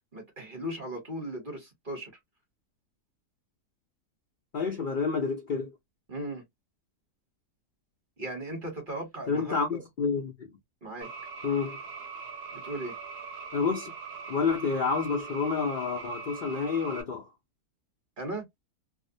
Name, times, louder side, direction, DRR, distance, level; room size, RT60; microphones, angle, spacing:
voice 1, 0.1-2.1 6.1-6.4 8.2-9.8 10.8-11.1 12.5-12.9 18.2-18.4, right 1 dB, 40° right, 1.0 m, -37 dB
voice 2, 4.5-5.7 9.3-10.5 11.4-11.8 13.5-13.9 14.3-17.3, left 5 dB, 70° left, 0.4 m, -29 dB
sound 1, 11.0-17.0, right 5 dB, 65° right, 0.6 m, -41 dB
2.6 x 2.0 x 2.6 m
omnidirectional pair, 1.6 m